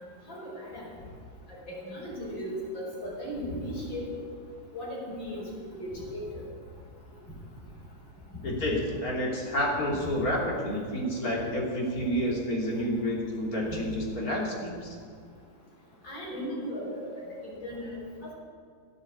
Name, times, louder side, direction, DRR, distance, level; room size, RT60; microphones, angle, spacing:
voice 1, 0.3-0.9 1.7-4.0 4.7-5.4 5.7-6.2 16.0-17.9, equal, 80° left, -5 dB, 6.0 m, -36 dB
voice 2, 8.4-14.9, equal, 50° left, -2 dB, 3.5 m, -29 dB
16.0 x 9.3 x 8.3 m, 2.1 s
omnidirectional pair, 2.1 m